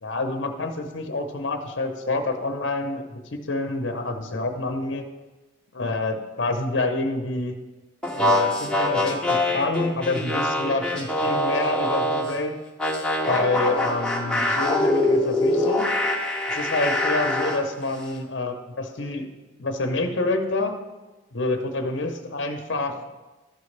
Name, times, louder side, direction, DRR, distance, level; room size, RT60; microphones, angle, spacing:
voice 1, 0.0-5.1 5.7-7.5 8.1-12.5 13.3-15.9 16.5-19.3 19.6-20.8 21.3-23.0, left 2 dB, 65° left, 5 dB, 0.8 m, -27 dB
sound 1, 8.0-12.4 12.8-17.6, left 1 dB, 5° left, 0.8 m, -24 dB
13.0 x 6.2 x 3.3 m, 1.2 s
head